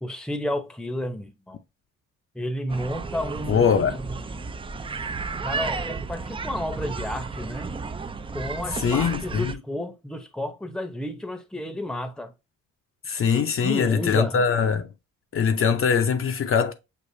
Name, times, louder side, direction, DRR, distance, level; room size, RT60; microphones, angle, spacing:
voice 1, 0.0-1.6 2.3-4.4 5.4-7.7 8.3-12.3 13.6-14.8, left 1 dB, ahead, 0.8 m, -32 dB
sound 1, 2.7-9.5, right 4 dB, 20° right, 0.4 m, -33 dB
voice 2, 3.5-4.0 8.8-9.5 13.1-14.9 15.3-16.7, left 6 dB, 45° left, 0.6 m, -22 dB
6.5 x 2.4 x 2.6 m
cardioid pair, 90°, 30 cm